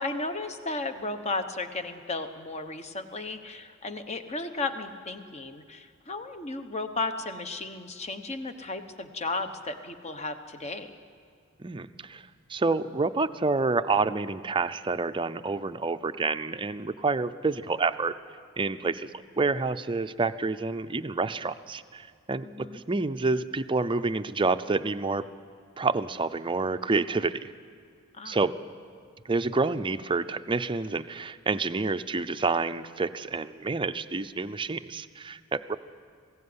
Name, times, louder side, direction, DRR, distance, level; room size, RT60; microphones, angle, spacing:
voice 1, 0.0-10.9 22.4-22.8 28.1-28.4, left 3 dB, 30° left, 8 dB, 1.1 m, -34 dB
voice 2, 11.6-18.1 18.6-19.1 19.4-25.2 25.8-27.5 28.2-28.5 29.3-35.8, right 3 dB, 25° right, 11 dB, 0.6 m, -28 dB
21.0 x 16.0 x 9.7 m, 2.2 s
head